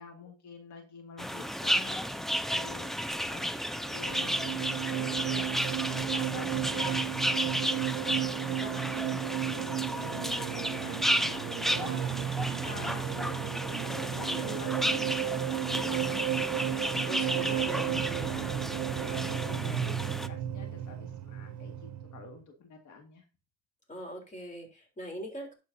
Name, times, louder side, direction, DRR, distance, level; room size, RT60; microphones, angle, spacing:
voice 1, 0.0-3.0 3.3-5.5 5.9-7.7 8.0-23.2, left 4 dB, 75° left, 3 dB, 1.9 m, -47 dB
sound 1, 1.2-20.3, equal, ahead, 0.5 m, -33 dB
voice 2, 3.5-3.9 14.3-14.6 17.0-18.6 23.9-25.5, equal, 25° left, 2 dB, 3.6 m, -42 dB
sound 2, 3.8-22.3, right 13 dB, 65° right, 0.6 m, -34 dB
12.0 x 7.0 x 2.7 m, 0.31 s
cardioid pair, 90°, 30 cm